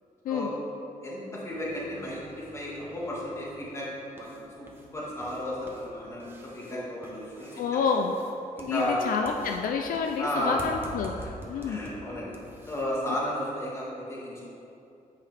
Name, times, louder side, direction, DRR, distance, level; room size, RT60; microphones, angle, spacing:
voice 1, 1.0-3.9 4.1-7.8 8.6-9.0 10.2-10.6 11.6-12.3 12.7-14.4, left 1 dB, 20° left, -6 dB, 2.0 m, -33 dB
sound 1, 1.5-12.9, right 1 dB, 15° right, 1.0 m, -48 dB
voice 2, 7.6-8.1 8.7-11.8, left 6 dB, 70° left, 3 dB, 0.5 m, -29 dB
9.8 x 8.2 x 3.4 m, 2.7 s
wide cardioid pair, 175°, 15 cm